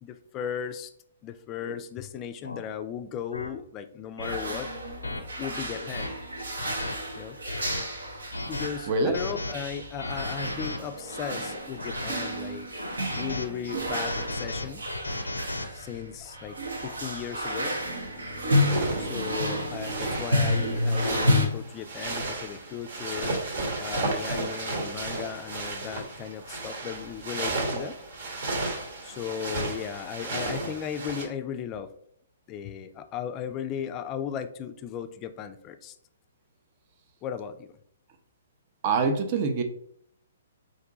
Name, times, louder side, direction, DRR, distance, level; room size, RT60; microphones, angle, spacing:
voice 1, 0.0-0.9 1.2-4.7 5.4-6.1 7.2-7.4 8.4-12.7 13.2-14.8 15.7-17.7 19.0-23.3 23.8-28.0 29.0-31.9 32.5-35.9 37.2-37.7, left 8 dB, 25° left, 10 dB, 0.4 m, -36 dB
sound 1, 1.6-1.8 2.4-2.6 3.3-3.5 4.2-4.4 5.0-5.2 5.7-6.1 6.6-6.9 7.4-7.8 8.3-8.7 9.1-9.5 10.0-10.8 11.4-12.1 12.8-13.5 13.9-15.7, left 2 dB, 85° left, 0.5 m, -34 dB
sound 2, 4.2-21.5, left 1 dB, 75° right, 0.9 m, -31 dB
voice 2, 8.9-9.2 38.8-39.6, right 4 dB, 40° right, 7 dB, 0.6 m, -24 dB
sound 3, 18.6-31.2, right 2 dB, 60° right, 1.1 m, -33 dB
4.3 x 2.6 x 3.8 m, 0.68 s
figure-of-eight pair, 125°, 0 cm